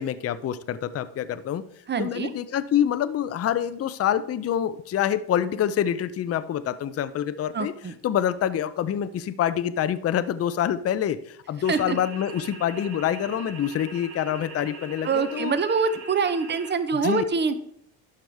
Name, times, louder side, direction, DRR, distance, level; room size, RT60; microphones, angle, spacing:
voice 1, 0.0-1.6 2.0-7.7 8.0-15.6 17.0-17.2, left 10 dB, 30° left, 13 dB, 0.5 m, -26 dB
voice 2, 1.9-2.3 7.5-7.9 11.7-12.0 15.0-17.6, right 5 dB, 25° right, 11 dB, 0.7 m, -25 dB
sound 1, 11.6-16.7, right 3 dB, 90° right, 1.4 m, -41 dB
12.0 x 5.0 x 3.4 m, 0.69 s
supercardioid pair, 90°, 47 cm